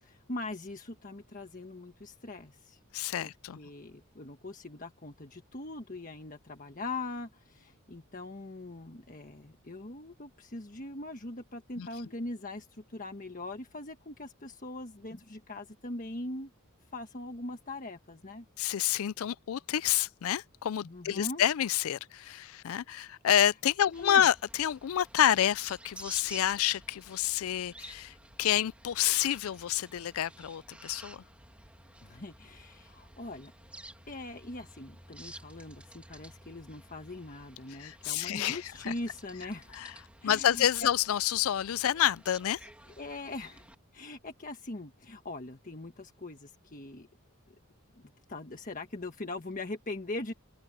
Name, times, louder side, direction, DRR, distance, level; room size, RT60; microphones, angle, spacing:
voice 1, 0.0-2.8 3.2-16.5 16.9-18.4 20.8-21.4 23.9-24.2 32.0-33.5 34.1-39.8 40.2-40.9 43.0-43.6 43.9-47.1 47.5-47.6 47.9-50.3, left 2 dB, 40° left, 1.5 m, -41 dB
voice 2, 2.9-3.6 11.8-11.9 18.6-31.2 37.8-38.9 39.7-39.9 40.2-42.6, left 10 dB, 70° left, 0.4 m, -28 dB
sound 1, 23.9-43.7, right 1 dB, 5° right, 2.3 m, -52 dB
open air
head